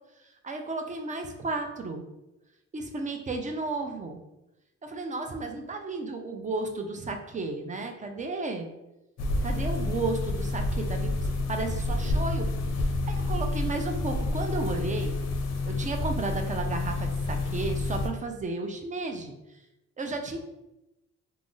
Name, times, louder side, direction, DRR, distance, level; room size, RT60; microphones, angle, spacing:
voice 1, 0.2-2.1 2.7-4.2 4.8-8.7 9.4-15.3 15.6-19.6 20.0-20.4, right 3 dB, 25° right, 5 dB, 0.4 m, -33 dB
sound 1, 9.2-18.1, left 2 dB, 60° left, 0.5 m, -29 dB
2.4 x 2.1 x 3.7 m, 0.94 s
cardioid pair, 90°, 30 cm